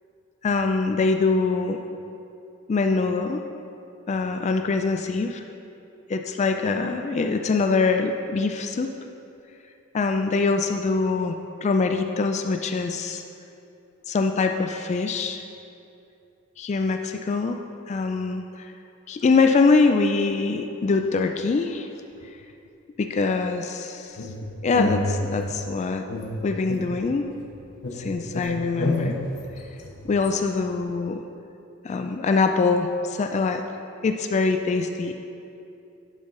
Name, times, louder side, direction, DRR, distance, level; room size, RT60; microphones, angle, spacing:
voice 1, 0.4-1.8 2.7-3.4 4.1-5.4 6.1-8.9 9.9-13.2 14.1-15.4 16.6-18.7 19.1-21.9 23.0-24.2 24.6-26.1 26.4-27.3 27.9-29.1 30.0-31.2 31.8-33.6 34.0-35.1, left 4 dB, 35° left, 6 dB, 0.3 m, -23 dB
sound 1, 24.2-25.6 26.1-27.5 27.8-30.4, left 1 dB, 90° left, 1.2 m, -29 dB
10.5 x 3.9 x 5.5 m, 2.7 s
head